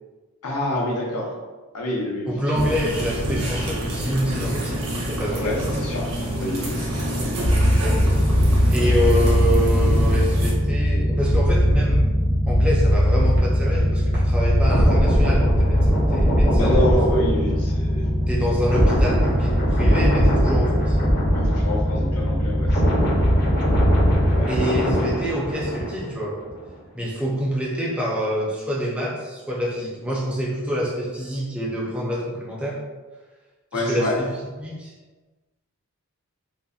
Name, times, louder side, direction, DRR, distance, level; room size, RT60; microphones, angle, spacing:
voice 1, 0.4-1.3 1.7-2.8 5.4-6.0 6.4-7.4 16.6-18.1 21.3-22.8 24.3-24.5 33.7-34.2, left 1 dB, 85° left, -2 dB, 0.6 m, -27 dB
voice 2, 2.3-5.6 8.7-12.1 12.5-17.0 18.3-21.0 23.2-23.4 24.5-26.4 26.9-32.8 33.7-34.3 34.6-34.9, equal, 5° right, -5 dB, 0.4 m, -26 dB
sound 1, 2.5-10.5, equal, 85° right, 0.6 m, -27 dB
sound 2, 7.4-24.4, equal, 45° right, 0.7 m, -20 dB
sound 3, 14.7-22.2 22.4-26.2 26.5-26.7, equal, 45° left, 0.6 m, -22 dB
2.6 x 2.1 x 2.3 m, 1.3 s
head